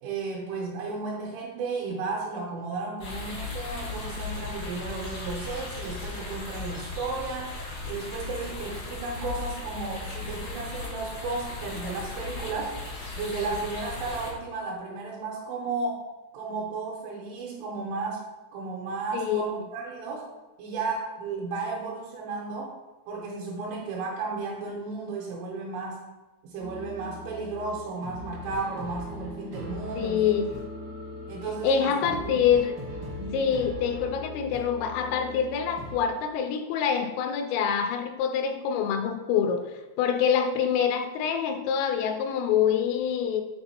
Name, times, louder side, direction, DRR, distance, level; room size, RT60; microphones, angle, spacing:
voice 1, 0.0-12.7 13.2-16.0 16.3-18.2 18.5-20.2 20.6-22.8 23.1-26.0 26.4-30.5 31.3-32.4 33.1-33.4, right 3 dB, 80° right, -4 dB, 3.5 m, -34 dB
sound 1, 3.0-14.3, left 3 dB, 70° left, 1.2 m, -37 dB
voice 2, 19.1-19.6 30.0-30.5 31.6-32.8 33.3-39.6 40.0-43.4, left 7 dB, 85° left, 6 dB, 3.1 m, -25 dB
sound 2, 26.6-36.0, left 1 dB, 55° right, 1.3 m, -40 dB
7.8 x 4.0 x 4.3 m, 1.1 s
omnidirectional pair, 5.8 m